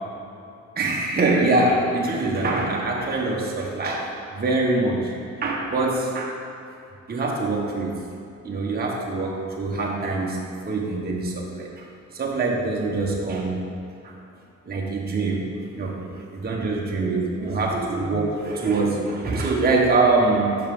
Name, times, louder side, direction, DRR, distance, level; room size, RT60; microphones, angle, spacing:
voice 1, 0.8-5.1 5.4-6.4 7.1-8.0 8.4-10.4 10.6-11.9 12.1-13.7 14.0-14.1 14.7-15.5 15.7-16.0 16.3-20.6, right 3 dB, 30° right, -2 dB, 1.1 m, -24 dB
5.8 x 5.5 x 5.3 m, 2.6 s
cardioid pair, 90°, 30 cm